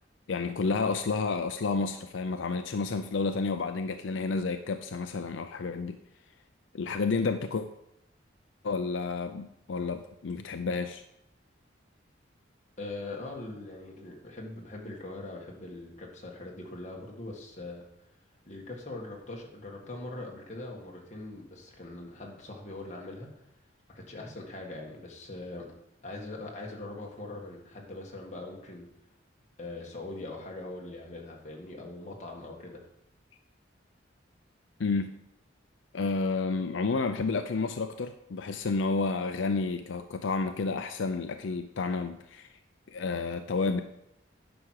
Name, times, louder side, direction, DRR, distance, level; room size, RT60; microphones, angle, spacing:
voice 1, 0.3-6.0 6.7-7.7 8.6-11.0 34.8-35.1 35.9-42.5 42.9-43.8, left 4 dB, 80° left, 8 dB, 0.5 m, -30 dB
voice 2, 12.8-17.8 18.5-23.3 23.9-25.7 26.0-28.9 29.6-32.8, left 2 dB, 35° left, -1 dB, 1.8 m, -41 dB
10.0 x 6.1 x 4.7 m, 0.83 s
head